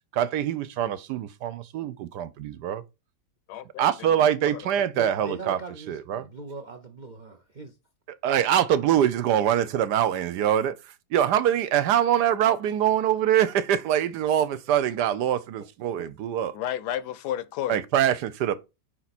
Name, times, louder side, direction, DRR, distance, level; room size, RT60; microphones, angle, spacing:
voice 1, 0.1-2.8 3.8-5.6 5.9-6.3 8.2-10.8 11.1-16.5 17.7-18.5, right 10 dB, 75° right, 1.2 m, -24 dB
voice 2, 3.5-4.6 16.5-17.8, left 11 dB, 75° left, 1.1 m, -33 dB
voice 3, 4.9-7.8 15.8-16.1, right 3 dB, 55° right, 0.5 m, -41 dB
9.5 x 4.4 x 4.1 m
omnidirectional pair, 1.9 m